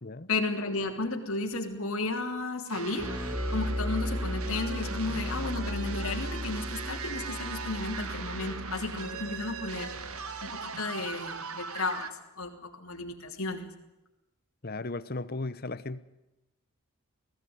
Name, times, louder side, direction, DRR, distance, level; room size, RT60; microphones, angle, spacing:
voice 1, 0.3-3.1 3.5-9.9 10.4-12.1 12.3-13.6, left 3 dB, 70° left, 3.1 m, -33 dB
sound 1, 2.7-12.1, right 5 dB, 80° right, 1.6 m, -39 dB
sound 2, 3.0-10.5, equal, 10° right, 2.7 m, -36 dB
voice 2, 14.6-16.0, left 2 dB, 45° left, 0.9 m, -36 dB
19.5 x 16.0 x 9.5 m
head